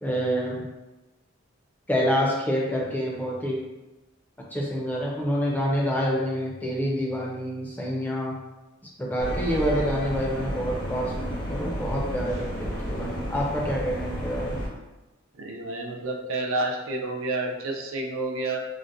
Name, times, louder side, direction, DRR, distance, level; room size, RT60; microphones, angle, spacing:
voice 1, 0.0-0.6 1.9-3.6 4.5-8.4 9.0-14.6, equal, 10° left, -4 dB, 0.4 m, -27 dB
sound 1, 9.2-14.7, equal, 70° left, 1.0 m, -32 dB
voice 2, 15.4-18.6, right 2 dB, 75° right, 1 dB, 0.5 m, -29 dB
3.9 x 2.1 x 2.5 m, 1.1 s
head